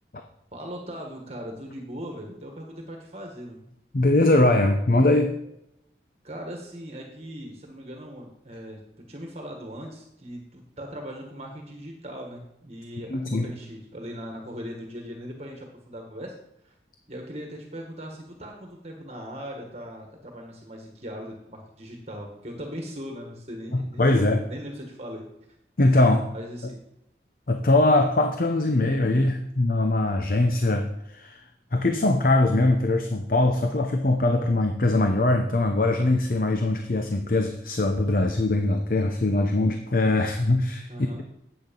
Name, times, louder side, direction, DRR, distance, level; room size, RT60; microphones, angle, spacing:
voice 1, 0.5-3.7 6.2-16.3 16.6-16.7 17.1-25.3 26.0-26.8 40.9-41.2, equal, 35° right, 1 dB, 1.5 m, -39 dB
voice 2, 3.9-5.4 13.1-13.5 23.7-24.4 25.8-26.3 27.5-31.4 31.7-40.9, left 2 dB, 50° left, 5 dB, 0.7 m, -22 dB
9.8 x 8.1 x 5.3 m, 0.83 s
head